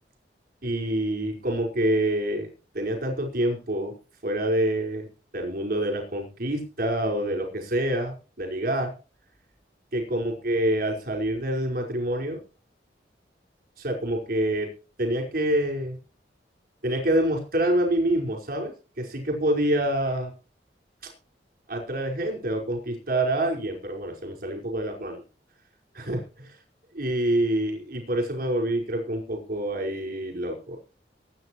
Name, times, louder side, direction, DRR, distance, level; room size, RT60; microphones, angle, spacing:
voice 1, 0.6-3.9 4.2-5.1 5.3-8.9 9.9-12.4 13.8-14.7 15.0-16.0 16.8-20.3 21.7-25.2 25.9-26.5 26.9-30.8, right 1 dB, 55° right, 2 dB, 5.1 m, -27 dB
23.0 x 9.4 x 3.2 m, 0.35 s
head